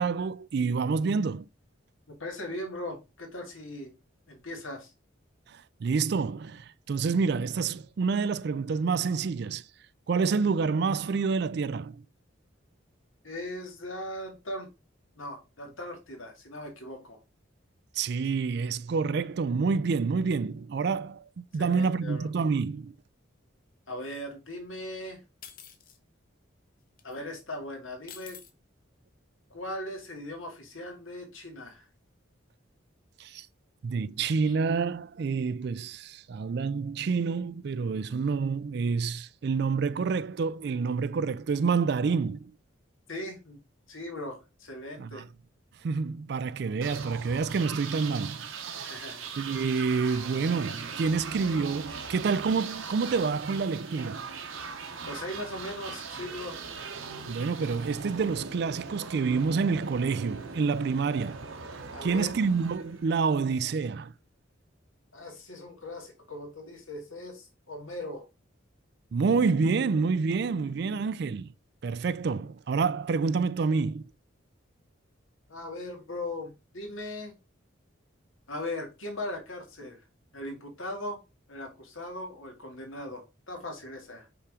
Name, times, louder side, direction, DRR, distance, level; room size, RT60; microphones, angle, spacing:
voice 1, 0.0-1.5 5.5-9.6 10.1-12.0 18.0-22.9 33.2-33.5 33.8-42.5 45.0-45.2 45.8-48.5 48.8-48.9 49.4-54.2 57.3-61.5 62.0-64.1 69.1-71.5 71.8-74.1, right 5 dB, 55° right, 0.3 m, -28 dB
voice 2, 2.1-3.9 4.3-4.9 13.2-14.7 15.2-17.2 21.5-22.3 23.9-25.2 27.0-28.4 29.5-31.9 34.5-34.6 43.1-43.6 43.9-45.3 48.8-49.2 55.1-56.6 61.9-62.4 65.1-68.3 75.5-77.3 78.5-80.0 80.3-81.2 81.5-84.3, left 1 dB, 85° left, 2.2 m, -39 dB
sound 1, 25.4-26.0 27.0-27.1 28.1-28.5, left 8 dB, 45° left, 0.8 m, -47 dB
sound 2, 46.8-63.5, right 5 dB, 85° right, 1.1 m, -40 dB
5.7 x 3.6 x 4.8 m
head